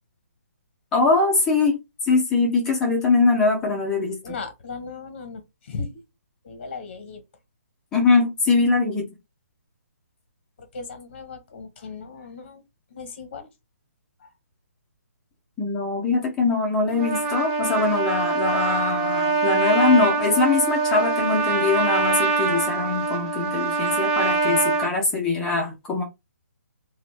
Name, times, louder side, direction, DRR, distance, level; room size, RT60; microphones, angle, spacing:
voice 1, 0.9-1.8 2.0-4.3 7.9-9.1 15.6-26.0, left 3 dB, 5° left, 0.3 m, -22 dB
voice 2, 4.2-6.0 6.4-7.2 10.6-12.6 12.9-13.5 14.2-14.3, left 4 dB, 40° left, 0.7 m, -37 dB
Trumpet, 16.9-24.9, right 4 dB, 30° right, 0.7 m, -24 dB
2.4 x 2.0 x 3.0 m
hypercardioid pair, 165°, 9 cm